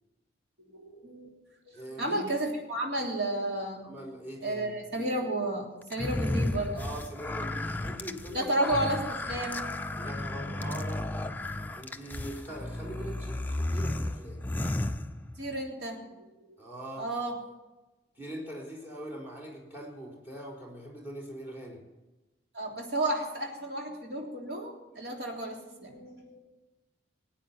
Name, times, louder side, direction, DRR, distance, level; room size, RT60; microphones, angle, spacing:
voice 1, 0.7-1.3 1.7-3.9 4.4-6.9 8.3-9.0 9.3-9.6 15.4-16.3 17.0-17.3 22.5-26.4, right 1 dB, 60° right, 0 dB, 3.3 m, -32 dB
voice 2, 1.7-2.3 3.8-4.7 6.7-8.7 10.0-11.1 11.8-14.4 16.6-17.1 18.2-21.8, right 1 dB, 10° right, -1 dB, 4.2 m, -42 dB
sound 1, 5.9-15.6, left 1 dB, 10° left, 0.5 m, -33 dB
19.0 x 9.1 x 7.3 m, 1.1 s
head